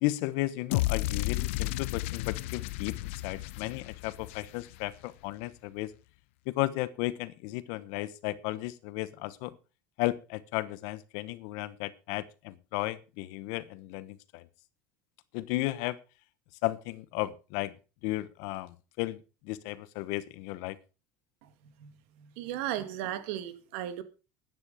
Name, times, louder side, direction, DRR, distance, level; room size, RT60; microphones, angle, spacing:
voice 1, 0.0-5.9 6.5-9.6 10.0-14.5 15.3-16.0 16.6-17.7 18.0-20.8, left 18 dB, 65° left, 1.0 m, -34 dB
sound 1, 0.7-4.9, left 19 dB, 85° left, 0.6 m, -33 dB
voice 2, 22.2-24.0, right 12 dB, 75° right, 2.0 m, -35 dB
12.5 x 9.8 x 5.0 m
cardioid pair, 145°, 7 cm